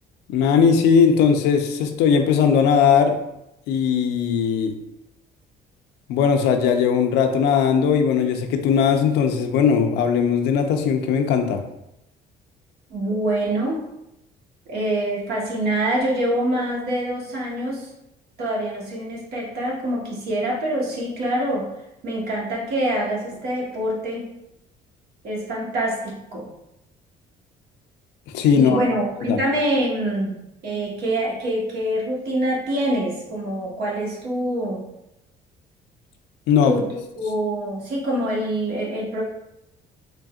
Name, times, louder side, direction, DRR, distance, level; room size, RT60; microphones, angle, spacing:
voice 1, 0.3-3.2 3.7-4.7 6.1-11.6 28.3-28.8 29.3-29.4 36.5-36.8, left 6 dB, 90° left, 5 dB, 0.5 m, -18 dB
voice 2, 12.9-13.8 14.7-17.9 18.4-21.7 22.0-24.3 25.2-26.5 28.5-30.3 30.6-34.8 36.6-36.9 37.2-39.2, right 1 dB, 70° right, -3 dB, 1.3 m, -25 dB
3.9 x 3.3 x 2.4 m, 0.87 s
cardioid pair, 110°, 17 cm